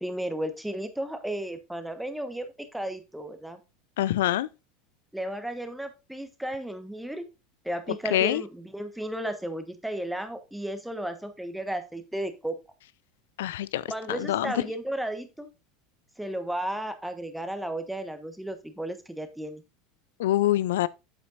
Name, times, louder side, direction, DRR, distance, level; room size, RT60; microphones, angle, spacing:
voice 1, 0.0-3.6 5.1-7.3 7.6-12.5 13.9-15.5 16.2-19.6, right 1 dB, 5° right, 1.2 m, -34 dB
voice 2, 4.0-4.5 8.1-8.4 13.4-13.8 14.1-14.5 20.2-20.9, left 14 dB, 65° left, 0.3 m, -25 dB
8.0 x 7.9 x 2.5 m
figure-of-eight pair, 75°, 0 cm